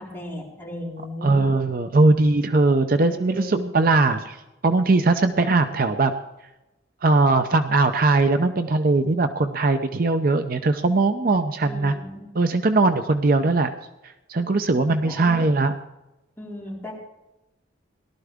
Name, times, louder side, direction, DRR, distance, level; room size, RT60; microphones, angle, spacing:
voice 1, 0.0-1.4 3.0-3.6 11.6-12.3 15.0-15.5 16.4-16.9, left 1 dB, 10° left, -7 dB, 4.5 m, -36 dB
voice 2, 1.2-4.4 4.6-6.1 7.0-12.0 12.3-13.7 14.0-15.7, right 3 dB, 45° right, 8 dB, 0.6 m, -20 dB
18.0 x 12.0 x 3.6 m, 0.98 s
head